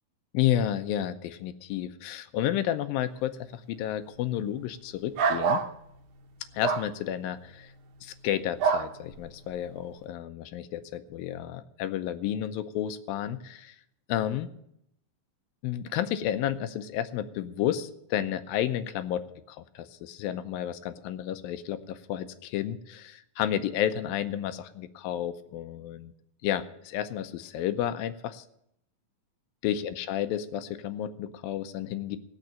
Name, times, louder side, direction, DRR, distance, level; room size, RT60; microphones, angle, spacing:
voice 1, 0.3-5.6 6.5-7.7 8.0-13.8 14.1-14.5 15.6-26.1 26.4-28.4 29.6-32.2, left 11 dB, 90° left, 10 dB, 2.5 m, -31 dB
sound 1, 5.2-5.7 6.6-6.9 8.6-8.9, right 6 dB, 80° right, 2.7 m, -25 dB
18.0 x 6.6 x 8.8 m, 0.77 s
omnidirectional pair, 4.1 m